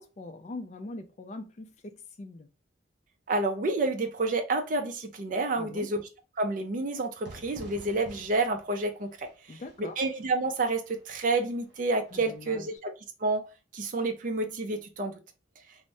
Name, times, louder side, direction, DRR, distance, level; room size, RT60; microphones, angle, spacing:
voice 1, 0.0-2.5 5.6-5.9 9.5-10.0 12.1-12.8, left 2 dB, 35° left, 0.3 m, -42 dB
voice 2, 3.3-6.0 6.4-9.6 10.0-12.9 13.2-13.5 13.7-15.2, right 2 dB, 45° right, 0.4 m, -29 dB
Fire / Fireworks, 7.2-12.8, right 1 dB, 65° right, 0.8 m, -52 dB
2.6 x 2.0 x 3.3 m
head